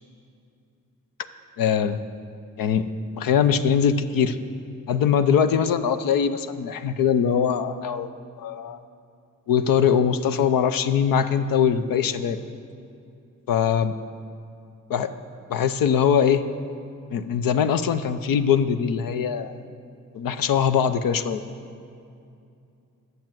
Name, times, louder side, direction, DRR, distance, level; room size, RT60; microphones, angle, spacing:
voice 1, 1.6-2.0 2.6-2.9 3.2-4.4 4.9-8.1 8.4-8.8 9.5-12.4 13.5-14.0 14.9-15.1 15.5-16.4 17.1-19.6 20.1-21.4, left 7 dB, 85° left, 11 dB, 0.6 m, -22 dB
11.5 x 7.9 x 7.5 m, 2.5 s
cardioid pair, 55°, 33 cm